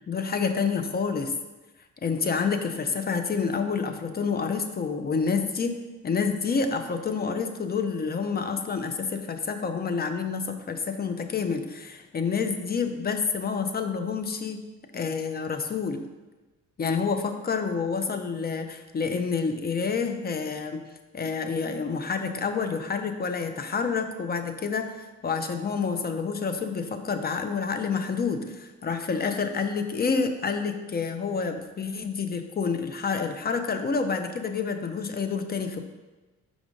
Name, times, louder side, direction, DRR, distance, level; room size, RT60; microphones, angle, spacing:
voice 1, 0.1-1.3 2.0-5.8 6.0-14.6 14.9-16.0 16.8-20.8 21.1-35.8, left 5 dB, 30° left, 7 dB, 0.6 m, -28 dB
5.0 x 4.9 x 3.8 m, 1.2 s
cardioid pair, 90°, 30 cm